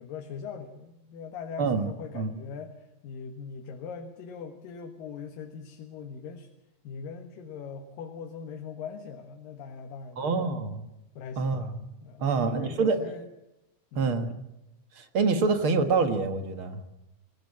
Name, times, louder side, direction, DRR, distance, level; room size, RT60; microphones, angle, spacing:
voice 1, 0.0-6.5 6.8-10.5 11.2-13.3 13.9-14.3, left 6 dB, 85° left, 5 dB, 3.1 m, -41 dB
voice 2, 1.6-1.9 2.1-2.3 10.2-10.9 11.4-11.7 12.2-13.0 14.0-14.3 15.0-17.0, right 4 dB, 50° right, 8 dB, 1.9 m, -26 dB
25.0 x 16.0 x 8.5 m, 0.92 s
omnidirectional pair, 3.8 m